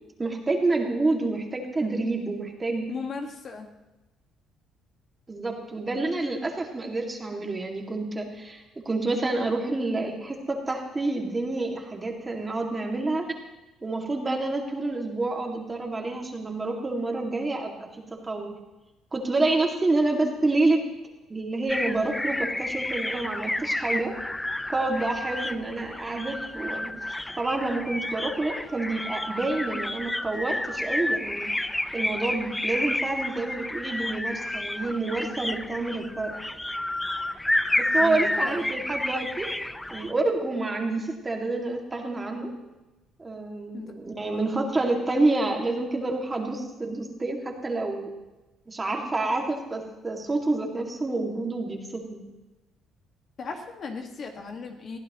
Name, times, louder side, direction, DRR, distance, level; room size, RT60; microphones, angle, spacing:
voice 1, 0.2-2.9 5.3-13.3 13.8-18.5 19.1-20.8 21.3-24.1 24.7-26.9 27.4-31.5 31.9-36.3 37.8-39.5 39.9-42.5 43.2-48.1 48.7-52.2, right 2 dB, 20° right, 1 dB, 2.2 m, -28 dB
voice 2, 2.9-3.7 38.0-38.7 43.7-43.9 44.2-44.6 53.4-55.0, left 4 dB, 45° left, 3 dB, 1.8 m, -37 dB
sound 1, 21.7-40.1, left 1 dB, 10° left, 0.5 m, -30 dB
21.5 x 15.0 x 3.1 m, 1.1 s
cardioid pair, 130°, 0 cm